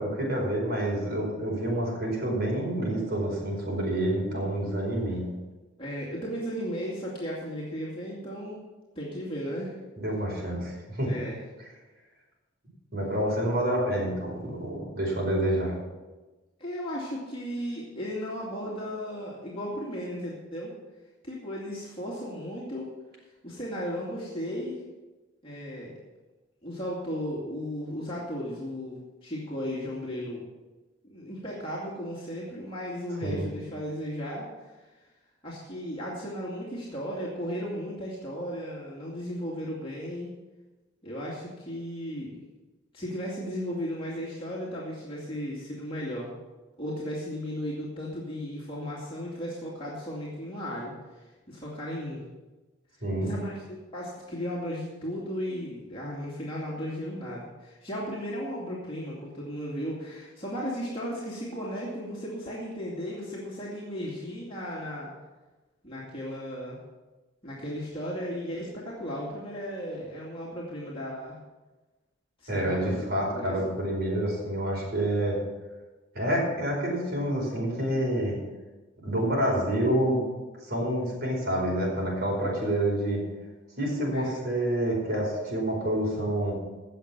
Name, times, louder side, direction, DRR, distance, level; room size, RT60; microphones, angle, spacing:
voice 1, 0.0-5.3 10.0-11.1 12.9-15.7 33.2-33.4 53.0-53.4 72.5-75.4 76.1-78.3 79.0-80.2 80.6-83.2 83.8-86.5, right 1 dB, 55° right, -2 dB, 4.9 m, -28 dB
voice 2, 5.8-8.6 9.0-9.7 11.0-11.4 16.6-20.7 21.2-22.9 23.4-24.8 25.4-25.9 26.6-30.4 31.0-34.7 35.4-40.3 41.0-42.4 42.9-46.3 46.8-52.2 53.2-65.1 65.8-66.8 67.4-71.4 72.4-73.0 73.3-73.7 84.1-84.4, equal, 30° left, -6 dB, 2.4 m, -35 dB
17.0 x 6.7 x 6.1 m, 1.2 s
head